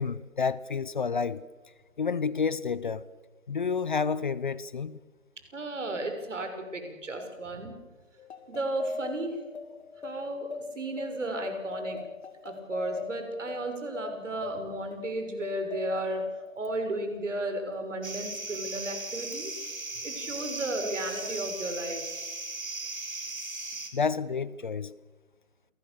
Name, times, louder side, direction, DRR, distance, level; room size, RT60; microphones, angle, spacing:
voice 1, 0.0-1.4 2.0-3.1 3.5-5.0 23.9-24.9, left 5 dB, 40° left, 0.7 m, -29 dB
voice 2, 5.5-7.7 8.5-9.4 10.0-10.5 10.7-12.0 12.4-16.2 16.6-19.5 20.0-22.1, right 2 dB, 65° right, 6.2 m, -34 dB
sound 1, 8.2-17.2, left 5 dB, 55° left, 2.5 m, -41 dB
sound 2, 18.0-23.9, right 3 dB, 80° right, 5.3 m, -37 dB
28.5 x 19.5 x 7.0 m
figure-of-eight pair, 150°, 40 cm